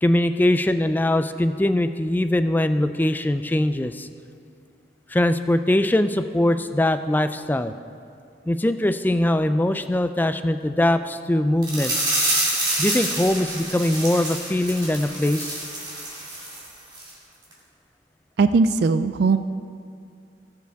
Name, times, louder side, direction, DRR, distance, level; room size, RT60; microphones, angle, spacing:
voice 1, 0.0-4.1 5.1-7.7 8.5-11.9 12.8-15.6, left 1 dB, 10° left, 10 dB, 0.3 m, -22 dB
sound 1, 11.6-16.7 16.9-17.1 17.5-17.6, right 1 dB, 25° right, 2.3 m, -27 dB
voice 2, 18.4-19.4, right 4 dB, 60° right, 11 dB, 0.3 m, -19 dB
19.5 x 7.0 x 3.5 m, 2.4 s
head